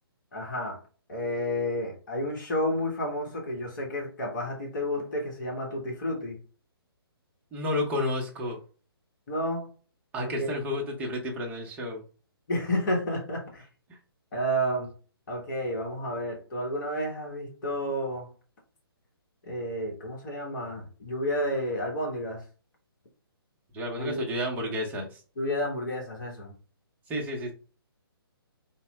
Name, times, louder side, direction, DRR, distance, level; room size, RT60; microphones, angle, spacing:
voice 1, 0.3-0.8 1.1-6.4 9.3-9.7 10.2-10.5 12.5-13.7 14.3-14.9 15.3-18.3 19.4-22.4 24.0-24.3 25.4-26.5, equal, 50° left, 0 dB, 1.1 m, -31 dB
voice 2, 7.5-8.6 10.1-12.0 13.9-14.0 23.7-25.2 27.1-27.5, left 1 dB, 10° right, 0 dB, 0.6 m, -31 dB
4.3 x 2.0 x 3.2 m, 0.38 s
figure-of-eight pair, 140°, 13 cm